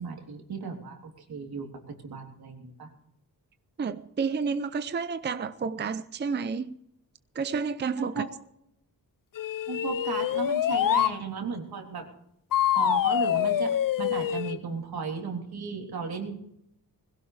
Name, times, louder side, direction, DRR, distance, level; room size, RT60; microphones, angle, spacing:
voice 1, 0.0-2.9 8.0-8.3 9.7-12.1 12.7-16.4, right 5 dB, 80° right, 3.5 m, -35 dB
voice 2, 3.8-6.8 7.3-8.2, right 5 dB, 30° right, 0.5 m, -30 dB
sound 1, 9.3-11.2 12.5-14.6, left 11 dB, 60° left, 0.6 m, -25 dB
21.5 x 16.5 x 3.4 m
wide cardioid pair, 160°, 37 cm